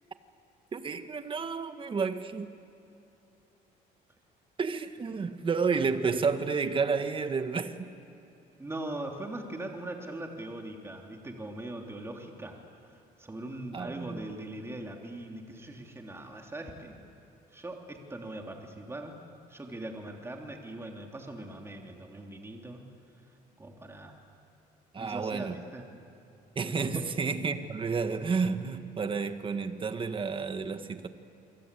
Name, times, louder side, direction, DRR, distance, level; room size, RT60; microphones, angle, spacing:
voice 1, 0.7-2.5 4.6-7.9 13.7-14.2 24.9-25.6 26.5-31.1, right 5 dB, 30° right, 1.7 m, -31 dB
voice 2, 8.6-16.9 17.5-19.1 19.5-22.8 23.2-24.2 25.0-25.8, right 1 dB, 15° right, 3.3 m, -41 dB
29.0 x 24.0 x 8.5 m
cardioid pair, 110°, 17 cm